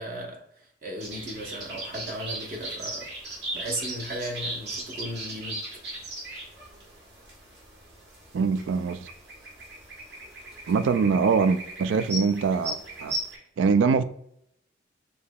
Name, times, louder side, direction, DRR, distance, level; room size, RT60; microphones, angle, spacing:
voice 1, 0.0-3.1 3.5-5.6, equal, 50° right, 0.8 m, -36 dB
sound 1, 1.0-13.4, right 1 dB, 65° right, 1.7 m, -38 dB
voice 2, 8.3-9.1 10.7-13.2 13.6-14.0, right 5 dB, 80° right, 0.3 m, -23 dB
6.6 x 2.8 x 2.3 m
head